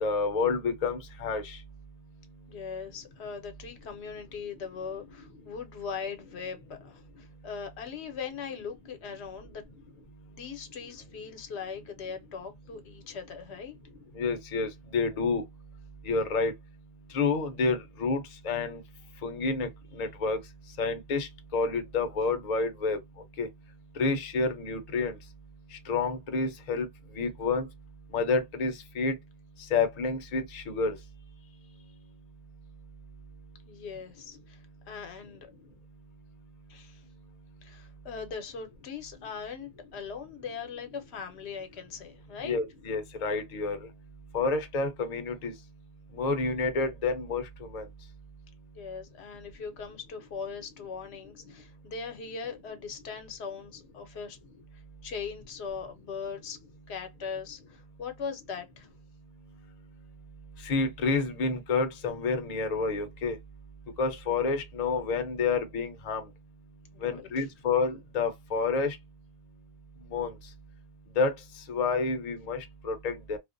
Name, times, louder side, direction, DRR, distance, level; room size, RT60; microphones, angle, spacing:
voice 1, 0.0-1.6 14.2-15.4 16.1-16.5 17.1-18.8 19.2-19.7 20.0-20.4 20.8-23.0 23.4-23.5 24.0-25.1 25.9-26.9 27.2-27.7 28.1-29.1 29.7-31.0 42.4-43.8 44.3-45.5 46.2-47.4 47.7-47.8 60.6-63.4 64.0-66.2 67.0-69.0 70.1-70.3 71.2-71.3 71.7-73.4, left 4 dB, 45° left, 0.6 m, -29 dB
voice 2, 2.5-9.6 10.3-13.8 31.4-31.8 33.7-35.5 36.7-37.0 37.6-42.6 48.7-54.4 55.0-56.6 56.9-58.9 66.9-67.5, left 6 dB, 80° left, 0.9 m, -40 dB
2.4 x 2.1 x 2.5 m
omnidirectional pair, 1.1 m